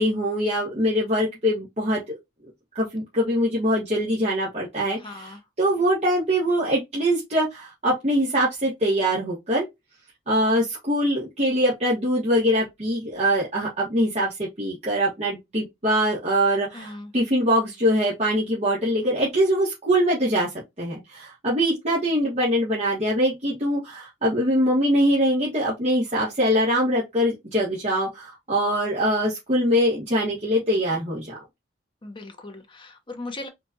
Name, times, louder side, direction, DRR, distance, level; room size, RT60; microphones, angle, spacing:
voice 1, 0.0-2.2 2.7-9.6 10.3-20.5 20.8-31.4, equal, 40° right, 1.3 m, -23 dB
voice 2, 5.0-5.4 16.7-17.1 32.0-33.5, left 2 dB, 30° left, 0.8 m, -38 dB
4.4 x 2.4 x 2.7 m
head